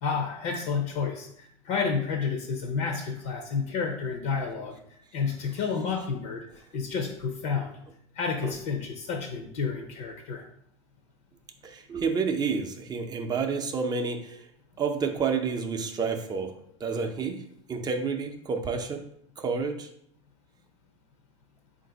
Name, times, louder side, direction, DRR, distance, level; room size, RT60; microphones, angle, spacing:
voice 1, 0.0-4.8 5.1-7.7 8.1-10.4, left 5 dB, 65° left, 3 dB, 0.6 m, -30 dB
voice 2, 11.6-14.5 14.8-17.4 17.7-19.1 19.4-19.9, right 5 dB, 25° right, 5 dB, 0.5 m, -29 dB
3.9 x 2.6 x 3.8 m, 0.69 s
hypercardioid pair, 100°, 16 cm